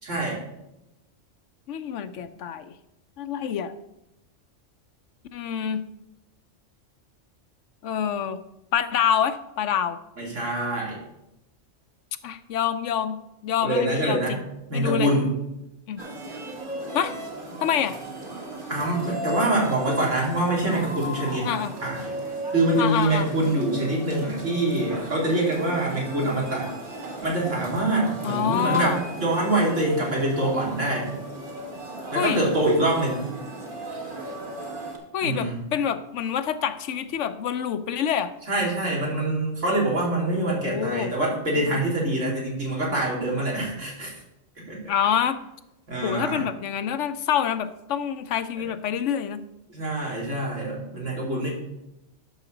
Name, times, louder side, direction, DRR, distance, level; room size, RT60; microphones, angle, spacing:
voice 1, 0.0-0.4 10.2-11.0 13.6-14.4 14.7-15.3 18.7-21.5 21.8-22.1 22.5-26.7 27.2-31.1 32.1-33.2 35.2-35.5 38.5-44.1 44.7-44.8 45.9-46.4 48.6-48.7 49.7-51.5, right 1 dB, 75° right, -4 dB, 3.3 m, -25 dB
voice 2, 1.7-2.7 3.2-3.7 5.3-5.8 7.8-8.4 8.7-10.0 12.2-13.2 13.4-14.4 14.7-15.1 15.9-16.0 16.9-17.1 17.6-18.0 21.4-21.7 22.8-23.3 28.2-29.0 32.1-32.4 35.1-38.3 40.4-41.1 44.9-45.4 46.0-49.4, left 8 dB, 75° left, 11 dB, 0.9 m, -26 dB
sound 1, 16.0-35.0, right 1 dB, 40° right, 1.7 m, -36 dB
11.5 x 6.5 x 3.9 m, 0.90 s
omnidirectional pair, 1.3 m